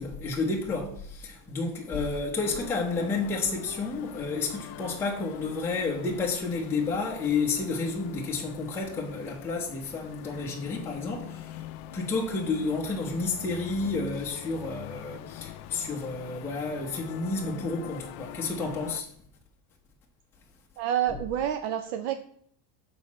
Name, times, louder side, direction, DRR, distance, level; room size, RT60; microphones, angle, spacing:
voice 1, 0.0-11.6 11.9-19.1 21.1-21.2, left 3 dB, 5° left, 0.8 m, -31 dB
sound 1, 2.4-19.0, left 12 dB, 60° left, 0.5 m, -44 dB
voice 2, 20.8-22.2, right 10 dB, 60° right, 0.6 m, -28 dB
6.4 x 4.2 x 5.9 m
cardioid pair, 170°, 50 cm